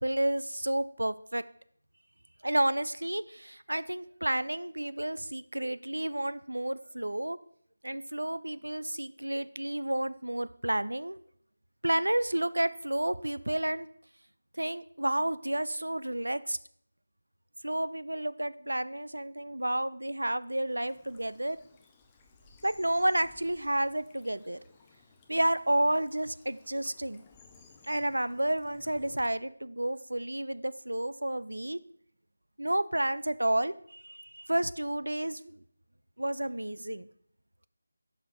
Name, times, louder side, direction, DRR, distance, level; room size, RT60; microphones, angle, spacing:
voice 1, 0.0-1.4 2.4-7.4 7.8-11.2 11.8-13.9 14.6-16.6 17.6-21.6 22.6-24.6 25.3-27.2 27.8-31.8 32.6-35.6 36.2-37.1, right 1 dB, 70° right, 15 dB, 0.3 m, -31 dB
Bird vocalization bird call bird song / Stream, 20.6-29.3, left 4 dB, 10° left, 0.4 m, -59 dB
5.7 x 4.7 x 4.6 m, 0.64 s
figure-of-eight pair, 160°, 0 cm